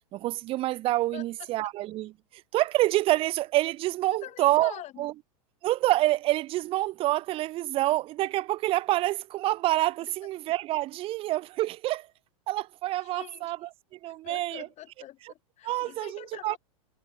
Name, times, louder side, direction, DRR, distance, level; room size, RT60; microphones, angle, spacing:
voice 1, 0.1-2.1 2.5-5.1 5.6-12.1 12.5-14.7 15.6-16.6, right 16 dB, 30° right, 0.4 m, -27 dB
voice 2, 4.1-5.1 10.0-10.1 13.0-13.5 14.2-16.6, left 14 dB, 35° left, 3.7 m, -45 dB
hypercardioid pair, 105°, 19 cm